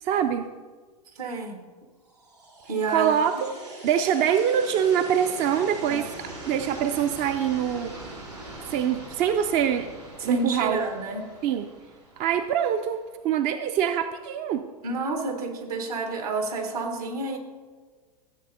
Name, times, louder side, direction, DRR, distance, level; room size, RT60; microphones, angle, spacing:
voice 1, 0.0-0.5 2.9-3.5 3.8-7.9 8.7-9.9 10.2-10.9 11.4-11.7 12.2-13.0 13.2-14.6, right 9 dB, 35° right, 8 dB, 0.4 m, -24 dB
voice 2, 1.1-1.6 2.7-3.2 5.8-6.0 10.2-11.2 14.8-17.4, right 3 dB, 70° right, 4 dB, 1.6 m, -29 dB
sound 1, 2.1-13.1, right 2 dB, 90° right, 3.1 m, -42 dB
14.0 x 7.4 x 2.6 m, 1.4 s
hypercardioid pair, 100°, 19 cm